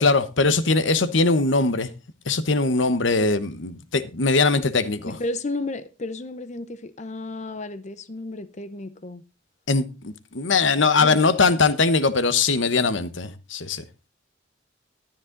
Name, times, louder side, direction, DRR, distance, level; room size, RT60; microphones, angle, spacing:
voice 1, 0.0-1.9 2.3-5.1 9.7-13.8, left 3 dB, 75° left, 1.1 m, -21 dB
voice 2, 5.0-9.2 11.0-11.2, left 2 dB, 40° left, 0.8 m, -32 dB
12.5 x 10.5 x 3.9 m
head